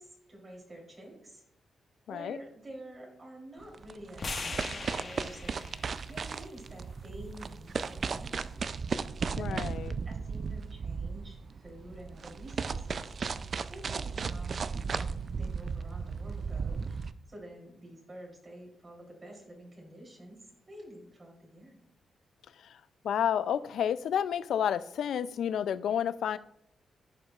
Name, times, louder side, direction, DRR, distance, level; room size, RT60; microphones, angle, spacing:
voice 1, 0.0-1.4 2.1-5.6 6.1-8.5 9.4-9.7 10.0-13.1 13.7-20.4 20.7-21.8, right 1 dB, 35° right, -2 dB, 3.3 m, -49 dB
voice 2, 2.1-2.4 9.4-9.9 23.0-26.4, left 9 dB, 80° left, 15 dB, 0.4 m, -30 dB
sound 1, 3.6-17.1, right 5 dB, 55° right, 0.4 m, -36 dB
sound 2, 4.2-8.4, left 3 dB, 50° left, 1.5 m, -43 dB
14.5 x 5.2 x 2.4 m, 0.73 s
cardioid pair, 65°, 0 cm